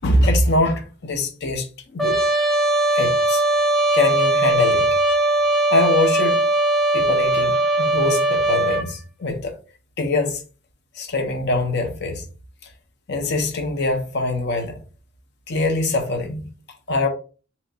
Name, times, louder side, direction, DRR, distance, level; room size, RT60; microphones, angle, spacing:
voice 1, 0.0-1.7 1.9-2.2 2.9-3.4 3.9-4.9 5.7-6.4 6.9-9.5 10.0-10.4 10.9-12.3 13.1-14.8 15.5-16.5 16.9-17.1, left 2 dB, 55° left, 0.6 m, -23 dB
Trumpet, 2.0-8.9, right 2 dB, ahead, 0.4 m, -19 dB
2.9 x 2.3 x 3.8 m
head